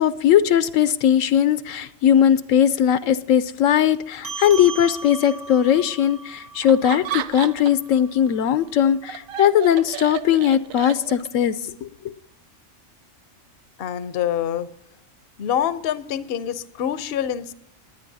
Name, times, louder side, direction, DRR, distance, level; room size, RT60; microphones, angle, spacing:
voice 1, 0.0-11.9, left 9 dB, 80° left, 14 dB, 1.0 m, -19 dB
sound 1, 4.2-9.0, right 3 dB, 65° right, 1.5 m, -38 dB
Laughter, 6.6-7.9 8.3-11.5, right 11 dB, 90° right, 1.0 m, -33 dB
voice 2, 13.8-14.7 15.4-17.5, left 10 dB, 55° left, 14 dB, 0.8 m, -26 dB
20.0 x 9.5 x 2.7 m, 0.72 s
omnidirectional pair, 1.4 m